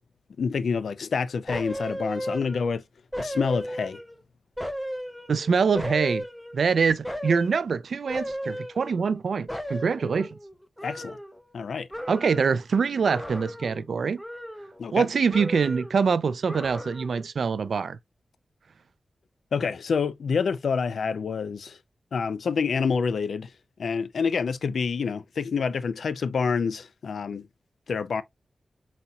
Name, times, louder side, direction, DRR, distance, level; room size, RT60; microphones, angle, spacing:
voice 1, 0.4-2.8 3.2-4.0 10.8-11.2 11.5-11.9 14.8-15.1 19.5-21.8 22.1-23.5 23.8-27.5 27.9-28.2, left 5 dB, 85° left, 0.4 m, -27 dB
sound 1, 1.5-2.8 3.1-4.2 4.6-6.7 7.0-7.6 8.1-9.2 9.5-11.6 11.9-12.6 13.1-13.9 14.2-15.0 15.3-16.0 16.5-17.3 17.6-17.7, equal, 5° left, 0.5 m, -35 dB
voice 2, 5.3-6.2 6.5-10.4 12.1-14.2 14.9-18.0, right 5 dB, 75° right, 0.3 m, -24 dB
4.1 x 4.0 x 2.3 m
wide cardioid pair, 125°, 0 cm